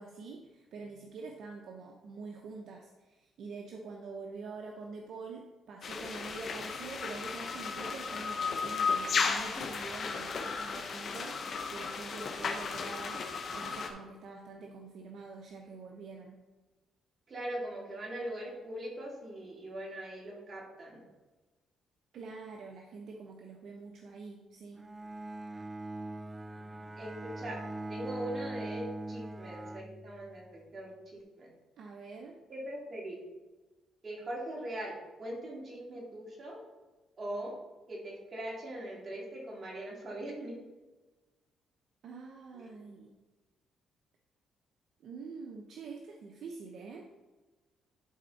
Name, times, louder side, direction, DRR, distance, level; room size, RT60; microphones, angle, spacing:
voice 1, 0.0-16.4 22.1-24.9 31.8-32.4 42.0-43.1 45.0-47.1, right 4 dB, 70° right, 2 dB, 0.8 m, -46 dB
sound 1, 5.8-13.9, left 5 dB, 50° left, 1.1 m, -35 dB
voice 2, 17.3-21.0 27.0-27.6 27.9-30.4 30.7-31.5 32.5-33.2 34.0-36.6 37.2-37.5 37.9-40.6 42.5-42.7, right 1 dB, 40° right, -3 dB, 2.7 m, -41 dB
Bowed string instrument, 24.8-30.6, right 2 dB, 20° right, 0.3 m, -42 dB
11.5 x 4.3 x 4.1 m, 1.2 s
cardioid pair, 90°, 0 cm